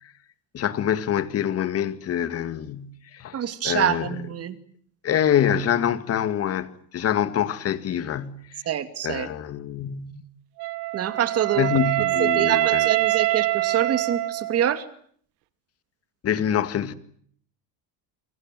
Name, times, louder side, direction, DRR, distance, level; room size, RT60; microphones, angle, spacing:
voice 1, 0.5-4.2 5.0-8.6 9.0-10.2 11.6-12.9 16.2-16.9, left 9 dB, 35° left, 2.1 m, -25 dB
voice 2, 3.3-4.6 8.7-9.3 10.9-11.7 12.2-14.8, right 10 dB, 35° right, 2.6 m, -26 dB
Wind instrument woodwind instrument, 10.6-14.8, right 19 dB, 65° right, 2.1 m, -24 dB
29.0 x 24.5 x 7.7 m
cardioid pair, 160°, 42 cm